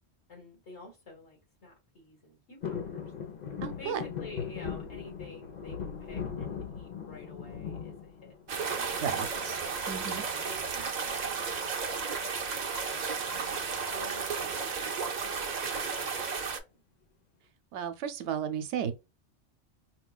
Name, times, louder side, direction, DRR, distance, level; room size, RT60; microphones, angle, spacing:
voice 1, 0.3-3.0 3.8-9.3 10.1-13.6 13.9-16.8, left 1 dB, 80° left, 1.9 m, -51 dB
sound 1, 2.6-8.8 9.2-9.8 11.1-11.5 11.8-11.9 12.2-12.5 13.3-14.2 14.7-14.8, left 7 dB, 45° left, 0.7 m, -39 dB
voice 2, 3.6-4.0 9.0-9.6 9.9-10.2 17.7-18.9, right 8 dB, 90° right, 0.9 m, -34 dB
sound 2, 8.5-16.6, right 5 dB, 50° right, 0.6 m, -33 dB
4.4 x 2.2 x 2.3 m
omnidirectional pair, 1.2 m